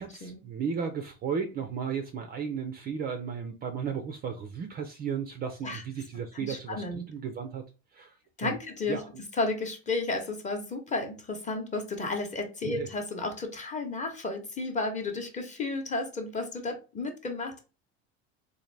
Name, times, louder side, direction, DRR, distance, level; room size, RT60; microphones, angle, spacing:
voice 1, 0.0-7.6 7.9-8.6 8.9-9.2 12.6-12.9, right 6 dB, 30° right, 0.4 m, -35 dB
voice 2, 6.4-7.0 8.4-9.0 9.4-17.6, left 3 dB, 20° left, 0.8 m, -32 dB
3.9 x 2.6 x 3.2 m
cardioid pair, 140°, 34 cm